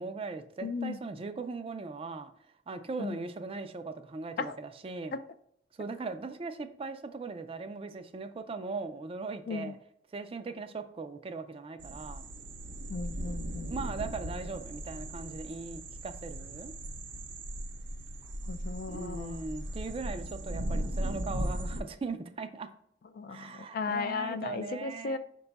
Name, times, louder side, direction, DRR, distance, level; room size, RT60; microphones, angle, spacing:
voice 1, 0.0-2.3 2.7-5.2 5.8-9.8 10.1-12.3 13.7-16.7 18.9-22.7 23.3-25.2, right 4 dB, 30° right, 0.3 m, -39 dB
voice 2, 0.6-1.0 3.0-3.2 4.4-4.6 5.1-5.2 9.5-9.7 12.9-13.7 18.5-19.4 23.1-25.2, left 4 dB, 55° left, 0.3 m, -35 dB
sound 1, 11.8-21.8, right 1 dB, 90° right, 0.6 m, -38 dB
5.7 x 2.3 x 4.0 m
head